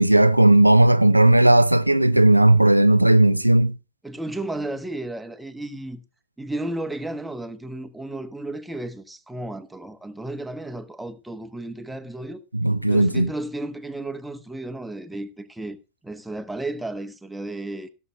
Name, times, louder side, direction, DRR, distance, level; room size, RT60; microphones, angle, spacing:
voice 1, 0.0-3.7 12.5-13.3, right 1 dB, 85° right, 0.4 m, -16 dB
voice 2, 4.0-6.0 6.4-12.4 12.9-15.8 16.0-17.9, right 1 dB, 5° right, 1.1 m, -33 dB
16.5 x 6.8 x 3.5 m
figure-of-eight pair, 90°, 0 cm